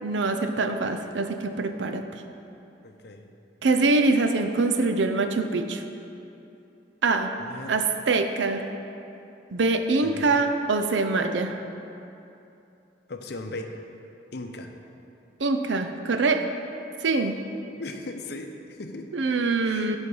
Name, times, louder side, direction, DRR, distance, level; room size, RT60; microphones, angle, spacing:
voice 1, 0.0-2.0 3.6-5.8 7.0-7.3 7.7-8.7 9.5-11.5 15.4-16.4 17.0-17.3 19.1-20.0, right 3 dB, 75° right, 7 dB, 0.6 m, -24 dB
voice 2, 2.8-3.3 7.4-7.8 10.0-10.4 13.1-13.8 14.3-14.7 17.7-19.1 19.6-20.0, left 2 dB, 60° left, 5 dB, 0.7 m, -38 dB
11.0 x 4.4 x 5.4 m, 2.8 s
head